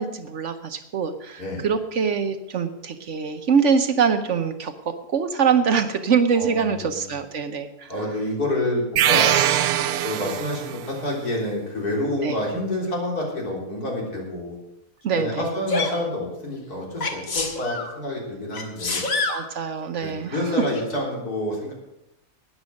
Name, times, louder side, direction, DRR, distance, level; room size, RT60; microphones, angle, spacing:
voice 1, 0.0-7.9 12.2-12.4 15.0-15.5 19.3-20.5, right 6 dB, 55° right, 8 dB, 1.1 m, -24 dB
voice 2, 6.3-7.0 7.9-9.3 10.0-14.6 15.1-19.1 20.0-21.7, left 1 dB, 80° left, -2 dB, 4.1 m, -28 dB
sound 1, 9.0-10.9, right 11 dB, 80° right, 1.2 m, -21 dB
Sneeze, 15.7-16.0 17.0-17.9 18.5-19.4 20.7-20.9, left 3 dB, 60° left, 2.0 m, -26 dB
13.0 x 9.4 x 6.4 m, 0.88 s
omnidirectional pair, 1.6 m